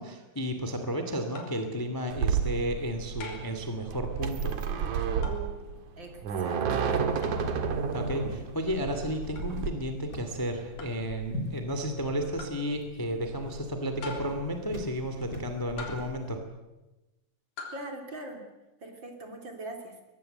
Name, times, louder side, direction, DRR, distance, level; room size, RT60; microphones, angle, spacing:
voice 1, 0.0-4.6 7.9-16.4, equal, 10° left, 6 dB, 2.0 m, -33 dB
sound 1, 1.3-1.7 3.2-3.6 5.2-5.5 7.2-7.4 9.4-9.5 10.8-11.1 12.4-12.7 14.0-14.5 15.8-16.2 17.6-17.9, left 3 dB, 75° left, 4.9 m, -42 dB
sound 2, 2.1-9.7, right 6 dB, 70° right, 3.0 m, -30 dB
voice 2, 6.0-7.1 17.7-18.5 18.8-20.0, right 1 dB, 35° right, 3 dB, 3.5 m, -42 dB
sound 3, 7.1-16.4, left 1 dB, 25° left, 3.1 m, -43 dB
23.5 x 19.0 x 8.0 m, 1.0 s
omnidirectional pair, 3.6 m